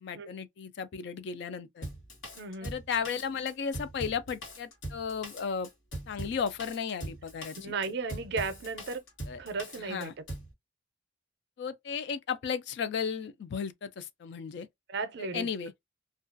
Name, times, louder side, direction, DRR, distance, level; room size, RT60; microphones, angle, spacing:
voice 1, 0.0-1.9 2.6-5.7 6.1-7.7 9.3-9.4 9.8-10.1 11.6-14.7 15.3-15.7, left 6 dB, 65° left, 0.3 m, -34 dB
Drum kit, 1.8-10.5, right 1 dB, 90° left, 1.2 m, -41 dB
voice 2, 2.3-2.8 7.6-9.0 9.4-10.2 14.9-15.5, right 4 dB, 60° right, 0.5 m, -35 dB
2.3 x 2.2 x 2.4 m
head